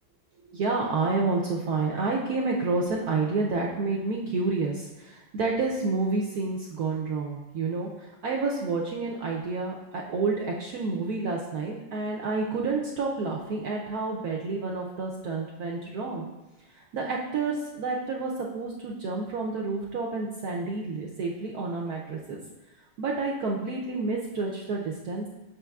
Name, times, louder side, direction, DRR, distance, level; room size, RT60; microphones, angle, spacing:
voice 1, 0.5-16.3 16.7-22.4 23.0-25.3, right 3 dB, 85° right, -1 dB, 0.8 m, -29 dB
7.2 x 6.1 x 2.3 m, 1.1 s
omnidirectional pair, 2.3 m